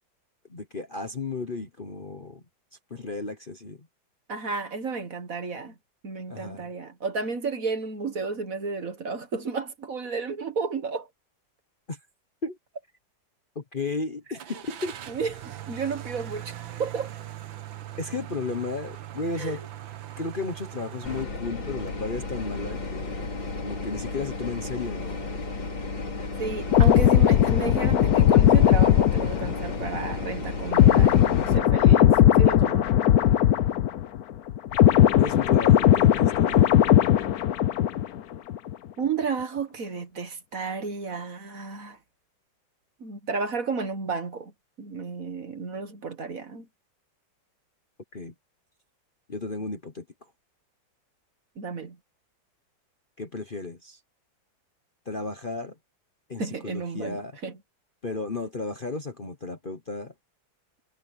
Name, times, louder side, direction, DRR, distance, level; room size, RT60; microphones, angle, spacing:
voice 1, 0.5-2.4 2.9-3.9 6.3-6.7 11.9-12.0 12.4-12.6 13.5-15.0 18.0-19.6 20.2-23.3 23.6-25.3 35.1-36.7 48.1-48.3 49.3-50.0 53.2-54.0 55.0-55.7 56.3-57.3 58.0-60.1, left 3 dB, 30° left, 1.2 m, -34 dB
voice 2, 4.3-5.7 6.0-11.1 15.1-17.1 19.4-19.7 26.4-32.9 39.0-42.0 43.0-44.5 44.8-46.7 51.6-52.0 56.4-57.5, right 4 dB, 45° right, 1.8 m, -32 dB
Car / Engine starting, 14.4-21.2, right 12 dB, 80° right, 2.0 m, -40 dB
sound 1, 21.0-31.6, left 3 dB, 80° left, 4.7 m, -34 dB
sound 2, 26.7-34.2 34.5-38.2 38.5-38.7, left 11 dB, 60° left, 1.2 m, -19 dB
omnidirectional pair, 2.1 m